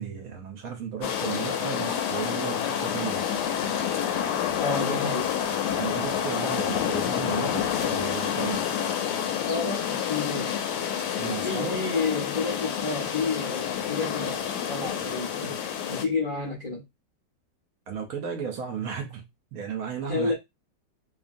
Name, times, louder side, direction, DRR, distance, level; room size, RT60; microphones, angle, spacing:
voice 1, 0.0-3.3 5.8-8.7 11.2-11.8 17.9-19.3 19.5-20.3, right 7 dB, 70° right, 0.9 m, -34 dB
sound 1, 1.0-16.0, left 9 dB, 75° left, 1.1 m, -28 dB
voice 2, 4.6-5.3 9.5-10.6 11.4-15.6 15.9-16.8 20.1-20.3, left 3 dB, 50° left, 0.4 m, -30 dB
2.8 x 2.3 x 2.5 m
omnidirectional pair, 1.9 m